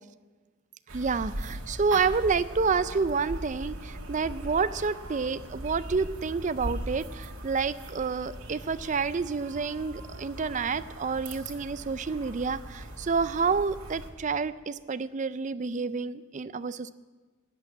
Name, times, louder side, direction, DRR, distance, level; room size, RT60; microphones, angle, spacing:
voice 1, 0.9-16.9, right 5 dB, 35° right, 15 dB, 0.4 m, -29 dB
sound 1, 0.9-14.1, right 1 dB, 80° right, 2.1 m, -40 dB
12.5 x 8.5 x 8.6 m, 1.3 s
head